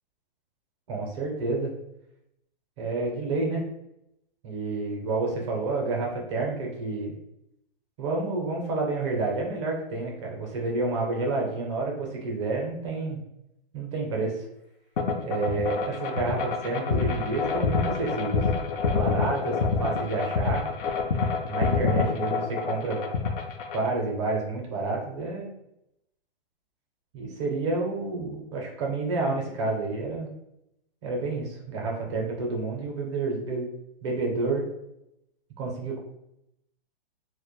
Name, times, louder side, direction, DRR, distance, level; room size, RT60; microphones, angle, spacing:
voice 1, 0.9-1.7 2.8-3.6 4.4-7.1 8.0-13.2 13.7-14.5 15.2-18.4 18.8-20.6 21.5-23.0 23.7-25.5 27.1-30.3 31.0-33.7 34.0-34.6 35.6-36.0, right 3 dB, 30° right, -1 dB, 0.5 m, -29 dB
sound 1, 15.0-23.9, left 5 dB, 65° left, 0.4 m, -27 dB
2.1 x 2.1 x 2.9 m, 0.83 s
hypercardioid pair, 160°, 30 cm